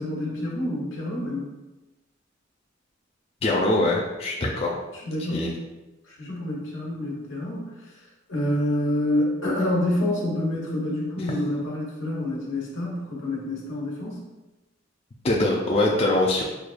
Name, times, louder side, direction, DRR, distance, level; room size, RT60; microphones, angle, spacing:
voice 1, 0.0-1.5 4.9-5.5 6.1-8.0 8.3-14.2, left 1 dB, 85° left, -4 dB, 1.2 m, -27 dB
voice 2, 3.4-4.7 5.3-5.5 15.2-16.4, left 2 dB, 30° left, -2 dB, 0.4 m, -22 dB
6.2 x 2.2 x 2.5 m, 1.1 s
head